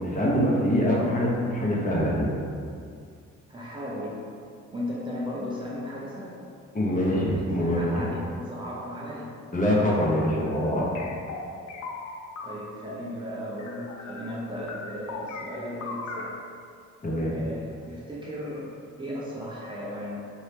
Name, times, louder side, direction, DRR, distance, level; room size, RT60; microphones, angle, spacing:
voice 1, 0.0-2.3 6.7-8.0 9.5-10.9 17.0-17.3, equal, 25° left, -5 dB, 1.1 m, -24 dB
voice 2, 3.5-4.2 4.7-6.5 7.6-9.4 12.4-16.4 17.2-20.2, equal, 15° right, -6 dB, 0.6 m, -36 dB
sound 1, 9.5-10.0 10.5-13.1 13.6-14.3 14.6-16.3, left 3 dB, 65° left, 0.6 m, -39 dB
4.3 x 2.7 x 3.4 m, 2.3 s
cardioid pair, 90°, 30 cm